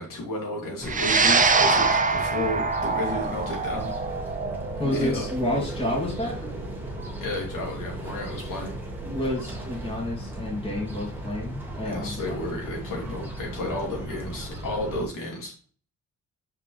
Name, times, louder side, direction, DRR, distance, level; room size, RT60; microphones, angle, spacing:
voice 1, 0.0-3.9 4.8-5.2 7.2-8.8 11.8-15.5, left 1 dB, 75° left, -1 dB, 3.1 m, -32 dB
sound 1, 0.8-15.1, right 1 dB, 5° right, 1.7 m, -37 dB
sound 2, 0.9-9.4, right 4 dB, 25° right, 0.7 m, -25 dB
voice 2, 4.8-6.4 9.0-12.4, left 1 dB, 15° left, -4 dB, 2.7 m, -30 dB
6.0 x 5.5 x 3.4 m, 0.41 s
cardioid pair, 120°, 33 cm